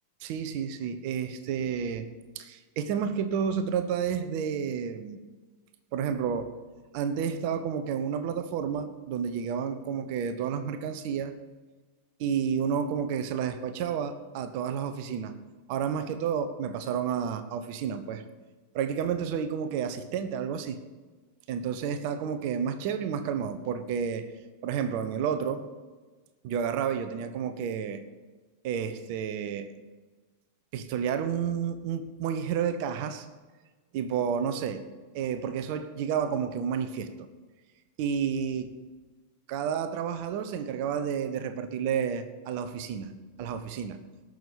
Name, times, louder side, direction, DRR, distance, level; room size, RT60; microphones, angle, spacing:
voice 1, 0.2-2.1 2.3-5.2 5.9-6.5 6.9-11.3 12.2-15.4 15.7-18.2 18.7-20.8 21.5-24.3 24.6-25.7 26.4-28.0 28.6-29.7 30.7-33.3 33.9-34.9 35.1-37.3 38.0-38.7 39.5-44.0, right 7 dB, 45° right, 11 dB, 1.0 m, -30 dB
18.5 x 6.6 x 5.2 m, 1.3 s
figure-of-eight pair, 90°, 0 cm